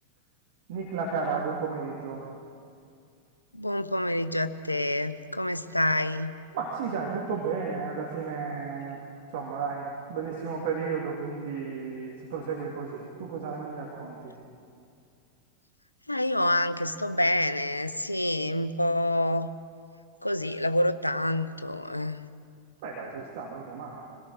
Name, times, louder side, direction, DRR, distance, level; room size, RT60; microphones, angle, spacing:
voice 1, 0.7-2.2 6.5-9.0 9.3-14.3 22.8-24.0, right 5 dB, 50° right, -2 dB, 3.0 m, -33 dB
voice 2, 3.5-6.4 16.1-19.5 20.2-22.2, left 1 dB, 85° left, 12 dB, 0.8 m, -27 dB
26.5 x 17.5 x 6.3 m, 2.4 s
figure-of-eight pair, 90°, 0 cm